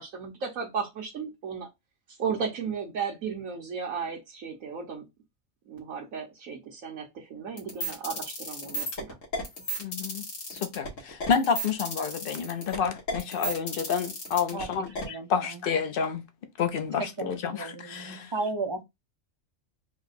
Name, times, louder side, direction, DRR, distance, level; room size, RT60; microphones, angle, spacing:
voice 1, 0.0-1.7 2.1-5.1 5.7-9.2, right 6 dB, 80° right, 1.4 m, -35 dB
sound 1, 7.6-15.0, equal, 70° left, 1.8 m, -34 dB
voice 2, 9.8-10.2 10.5-16.3 16.6-18.3, left 6 dB, 50° left, 0.8 m, -29 dB
voice 3, 15.0-15.6 17.2-18.8, right 3 dB, 30° right, 0.5 m, -34 dB
4.5 x 2.2 x 4.1 m
omnidirectional pair, 1.4 m